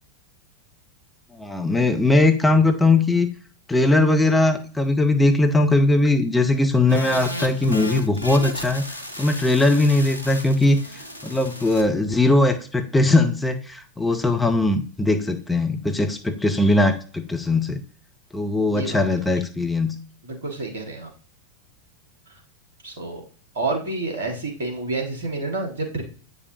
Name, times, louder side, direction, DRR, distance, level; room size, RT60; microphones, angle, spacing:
voice 1, 1.3-3.3 3.7-8.8 9.2-17.8 18.3-19.9, left 2 dB, 5° left, 6 dB, 0.7 m, -20 dB
sound 1, 6.9-11.8, equal, 85° right, 0.9 m, -34 dB
voice 2, 18.6-19.2 20.2-21.1 22.8-23.2 23.6-26.0, right 3 dB, 65° right, 2 dB, 1.8 m, -29 dB
8.3 x 5.2 x 2.8 m, 0.40 s
figure-of-eight pair, 90°, 0 cm